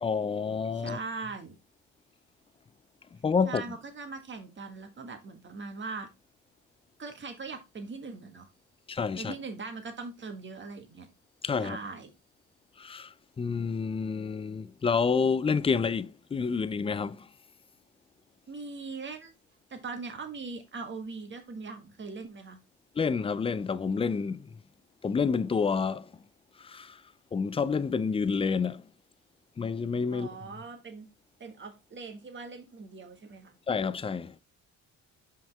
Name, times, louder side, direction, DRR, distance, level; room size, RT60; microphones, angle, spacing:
voice 1, 0.0-1.0 3.2-3.6 8.9-9.3 11.4-11.8 12.8-13.1 13.4-17.3 23.0-24.5 25.0-26.1 26.6-27.0 27.3-28.8 29.6-30.3 33.7-34.3, left 5 dB, 20° left, 0.4 m, -28 dB
voice 2, 0.7-1.5 3.4-6.1 7.0-8.5 9.2-11.1 11.6-12.1 18.5-19.3 19.7-22.6 30.1-31.1 31.4-33.6, right 4 dB, 40° right, 1.7 m, -40 dB
5.6 x 5.4 x 3.4 m
cardioid pair, 90°, 30 cm